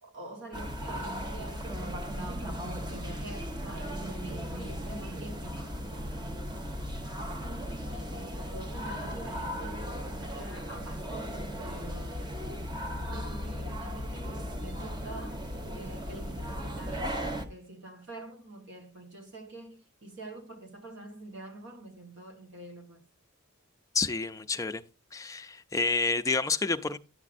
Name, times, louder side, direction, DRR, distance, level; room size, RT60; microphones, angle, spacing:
voice 1, 0.0-5.8 6.5-6.8 7.9-12.3 13.1-23.1, right 2 dB, 55° right, 1.3 m, -46 dB
sound 1, 0.5-17.5, equal, 20° right, 0.9 m, -37 dB
voice 2, 23.9-24.8 25.1-27.0, left 4 dB, 15° left, 0.5 m, -29 dB
10.5 x 7.2 x 2.5 m
head